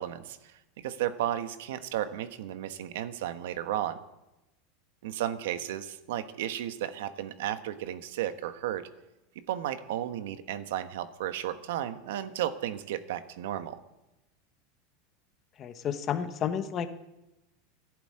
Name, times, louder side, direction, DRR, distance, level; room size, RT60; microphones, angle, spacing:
voice 1, 0.0-4.0 5.0-8.9 9.5-13.8, right 11 dB, 80° right, 10 dB, 1.2 m, -34 dB
voice 2, 15.6-16.9, left 8 dB, 25° left, 9 dB, 1.1 m, -31 dB
14.5 x 11.0 x 8.7 m, 0.96 s
supercardioid pair, 170°, 0 cm